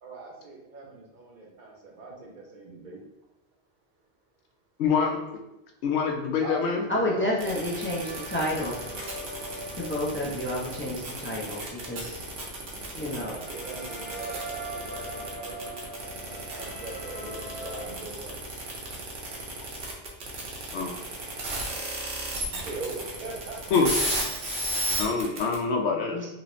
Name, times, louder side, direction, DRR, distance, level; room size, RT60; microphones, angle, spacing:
voice 1, 0.0-3.0 6.4-9.3 12.9-15.8 16.2-18.4 22.5-23.8, right 3 dB, 50° right, -2 dB, 0.8 m, -41 dB
voice 2, 4.8-5.2 5.8-6.8 20.7-20.9 23.7-23.9 25.0-26.2, left 5 dB, 85° left, 3 dB, 0.9 m, -25 dB
voice 3, 6.9-8.8 9.8-12.2 12.9-13.4 26.1-26.3, left 1 dB, 15° left, -5 dB, 0.4 m, -30 dB
sound 1, 7.1-17.9, right 1 dB, 55° left, 1.0 m, -43 dB
sound 2, 7.4-25.6, right 1 dB, 75° right, 1.0 m, -33 dB
3.1 x 2.7 x 3.0 m, 0.91 s
omnidirectional pair, 1.1 m